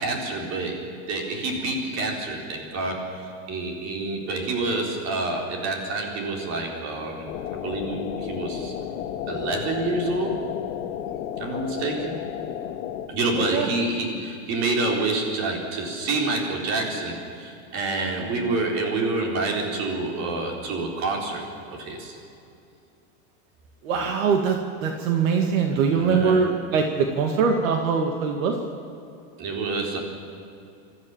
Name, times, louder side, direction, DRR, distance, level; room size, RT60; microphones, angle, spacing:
voice 1, 0.0-7.3 7.6-8.7 9.3-10.4 11.4-12.2 13.1-22.2 25.7-26.5 27.5-27.6 29.4-30.0, right 2 dB, 40° right, 1 dB, 4.3 m, -28 dB
sound 1, 7.3-13.1, left 10 dB, 70° left, 1.6 m, -32 dB
voice 2, 13.3-13.7 23.8-28.5, right 5 dB, 80° right, 4 dB, 2.1 m, -22 dB
26.0 x 14.0 x 7.2 m, 2.6 s
supercardioid pair, 155°, 40 cm